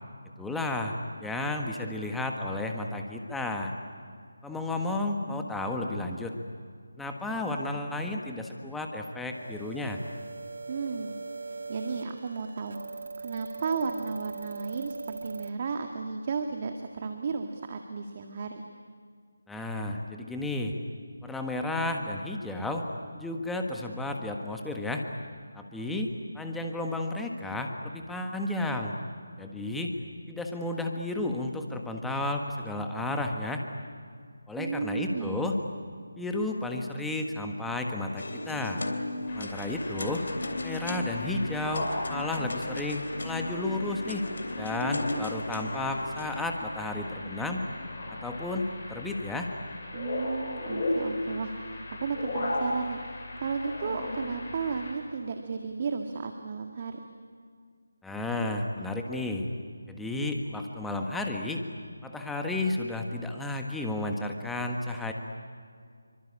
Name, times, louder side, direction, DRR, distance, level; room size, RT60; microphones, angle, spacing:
voice 1, 0.4-3.7 4.4-6.4 7.0-10.0 19.5-20.8 21.2-22.9 23.1-25.1 25.5-26.1 26.3-28.9 29.4-29.9 30.3-33.6 34.5-35.6 36.2-38.8 39.3-40.2 40.6-44.3 44.5-47.6 48.2-49.5 58.0-59.5 59.9-61.6 62.0-65.1, left 2 dB, 5° left, 2 dB, 1.5 m, -32 dB
sound 1, 9.3-15.5, right 4 dB, 55° right, 1.7 m, -41 dB
voice 2, 10.7-11.2 11.5-18.6 34.6-35.5 49.9-57.0, right 5 dB, 35° right, 5 dB, 1.8 m, -34 dB
sound 2, 38.2-46.4, left 2 dB, 65° left, 3.4 m, -37 dB
sound 3, 39.3-54.9, left 2 dB, 35° left, 7.2 m, -36 dB
28.0 x 24.5 x 8.7 m, 2.1 s
figure-of-eight pair, 160°, 0 cm